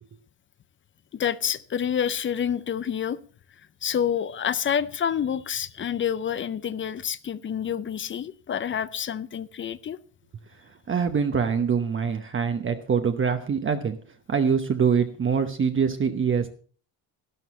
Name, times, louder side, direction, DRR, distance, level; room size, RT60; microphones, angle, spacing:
voice 1, 1.1-3.2 3.8-10.0, left 8 dB, 30° left, 0.5 m, -28 dB
voice 2, 10.9-14.0 14.3-16.5, right 6 dB, 30° right, 0.9 m, -24 dB
12.5 x 12.0 x 4.2 m
cardioid pair, 135°, 43 cm